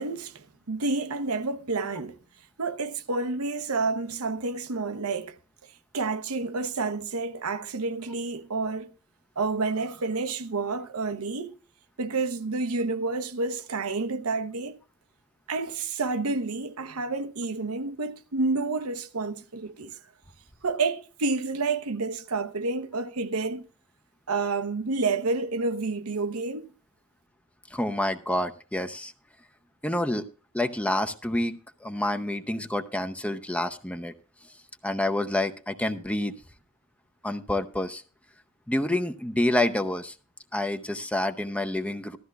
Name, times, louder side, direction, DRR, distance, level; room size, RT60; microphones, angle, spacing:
voice 1, 0.0-2.2 2.6-5.4 5.9-8.9 9.4-11.6 12.0-14.8 15.5-20.0 20.6-23.6 24.3-26.7, right 3 dB, 80° right, 0.9 m, -29 dB
voice 2, 27.7-29.1 29.8-30.2 30.5-34.1 34.8-36.4 37.2-38.0 38.7-40.1 40.5-42.2, left 1 dB, 5° left, 0.7 m, -28 dB
15.5 x 13.0 x 2.4 m
head